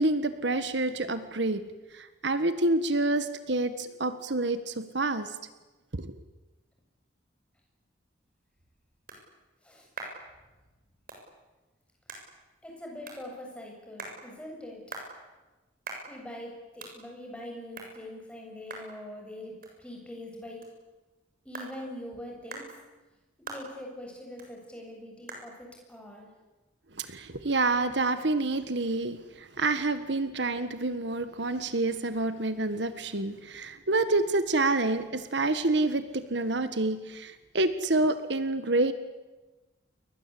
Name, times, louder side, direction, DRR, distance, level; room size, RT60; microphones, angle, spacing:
voice 1, 0.0-1.6 1.9-5.3 5.9-6.2 27.0-38.9, right 2 dB, 65° right, 11 dB, 1.6 m, -28 dB
sound 1, 8.2-27.5, right 3 dB, 45° right, 7.2 m, -48 dB
voice 2, 12.6-14.8 16.1-19.5 19.8-20.6 21.4-22.7 23.5-26.3, left 1 dB, 5° left, 0 dB, 7.5 m, -43 dB
30.0 x 22.5 x 8.6 m, 1.2 s
head